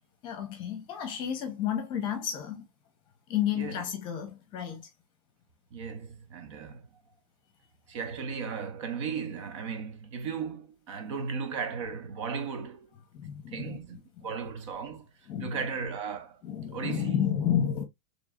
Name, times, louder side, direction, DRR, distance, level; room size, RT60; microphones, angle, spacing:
voice 1, 0.2-2.7 3.3-4.9 13.1-14.0 15.3-15.6 16.4-17.8, left 9 dB, 25° left, 1.0 m, -31 dB
voice 2, 5.7-6.9 7.9-12.9 13.5-15.1 15.4-16.4 16.7-17.2, right 6 dB, 55° right, 1.0 m, -36 dB
4.6 x 3.3 x 2.4 m
supercardioid pair, 170°, 18 cm